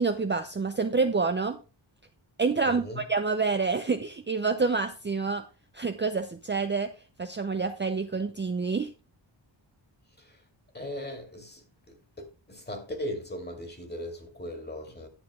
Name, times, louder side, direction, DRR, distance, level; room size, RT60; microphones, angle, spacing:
voice 1, 0.0-1.6 2.4-5.4 5.7-6.9 7.2-8.9, right 4 dB, 25° right, 0.6 m, -27 dB
voice 2, 2.7-3.0 10.2-10.4 10.7-15.1, left 1 dB, 20° left, 2.4 m, -39 dB
11.0 x 6.9 x 3.6 m
wide cardioid pair, 100°, 46 cm